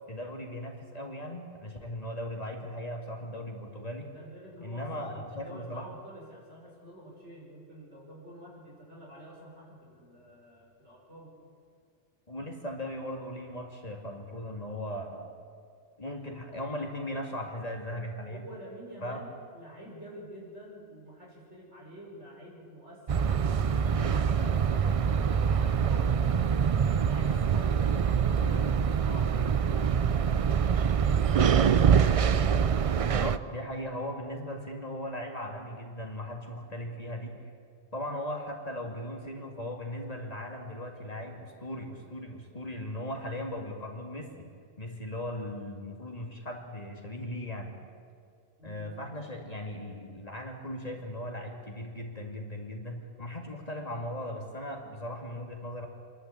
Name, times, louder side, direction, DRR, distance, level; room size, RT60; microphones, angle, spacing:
voice 1, 0.1-4.1 4.6-5.9 12.3-15.3 16.0-18.5 19.0-19.2 33.0-37.4 37.9-44.5 44.8-47.8 48.6-55.9, left 1 dB, 35° left, 1 dB, 2.4 m, -38 dB
voice 2, 4.0-11.3 18.3-19.3 19.5-31.5 48.6-48.9, equal, 90° right, -4 dB, 6.1 m, -48 dB
sound 1, 23.1-33.4, right 7 dB, 45° right, 0.4 m, -25 dB
26.5 x 11.5 x 8.5 m, 2.2 s
omnidirectional pair, 1.1 m